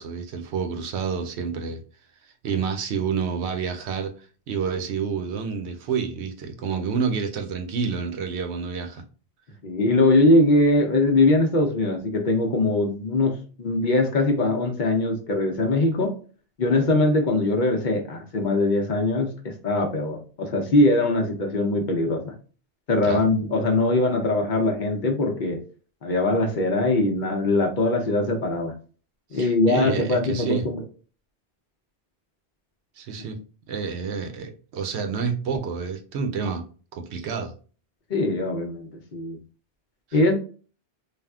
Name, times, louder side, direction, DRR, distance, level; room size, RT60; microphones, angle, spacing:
voice 1, 0.0-1.8 2.4-9.0 23.0-23.2 29.3-30.7 33.0-33.4 33.7-36.6 36.9-37.5, right 6 dB, 85° right, 0.9 m, -29 dB
voice 2, 9.6-16.1 16.6-22.3 22.9-25.6 26.0-28.7 29.3-30.8 38.1-39.4 40.1-40.3, left 2 dB, 50° left, 0.7 m, -22 dB
3.5 x 2.4 x 2.2 m
omnidirectional pair, 1.1 m